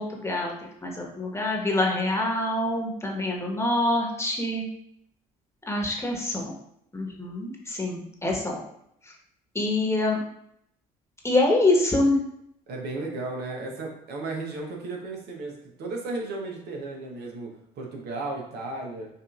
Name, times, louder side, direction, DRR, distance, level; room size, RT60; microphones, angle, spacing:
voice 1, 0.0-4.7 5.7-6.5 6.9-8.6 9.1-9.2 9.5-10.2 11.2-12.2, left 2 dB, 15° left, 0 dB, 1.2 m, -25 dB
voice 2, 12.7-19.1, right 2 dB, 65° right, 0 dB, 0.9 m, -34 dB
5.3 x 2.6 x 2.4 m, 0.74 s
hypercardioid pair, 60°, 18 cm